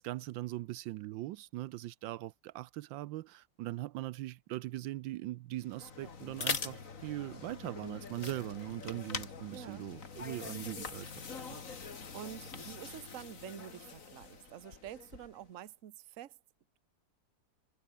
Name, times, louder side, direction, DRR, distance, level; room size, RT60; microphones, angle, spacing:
voice 1, 0.0-11.1 11.5-11.6, right 16 dB, 80° right, 1.3 m, -41 dB
sound 1, 5.6-15.5, left 5 dB, 45° left, 2.4 m, -43 dB
voice 2, 9.5-9.9 12.1-16.4, right 11 dB, 50° right, 1.2 m, -48 dB
omnidirectional pair, 2.0 m